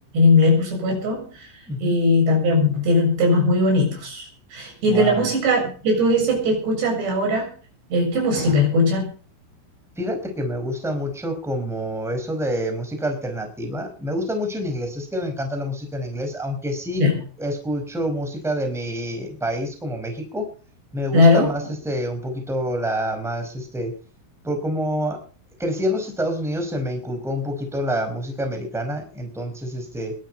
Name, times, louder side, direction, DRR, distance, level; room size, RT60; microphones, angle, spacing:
voice 1, 0.1-7.5 7.9-9.1 17.0-17.2 21.1-21.5, left 2 dB, 55° right, 0 dB, 9.1 m, -19 dB
voice 2, 4.9-5.3 10.0-17.0 17.4-20.5 20.9-23.9 24.4-25.2 25.6-30.1, equal, ahead, 4 dB, 4.4 m, -27 dB
22.0 x 9.3 x 5.5 m, 0.41 s
omnidirectional pair, 5.7 m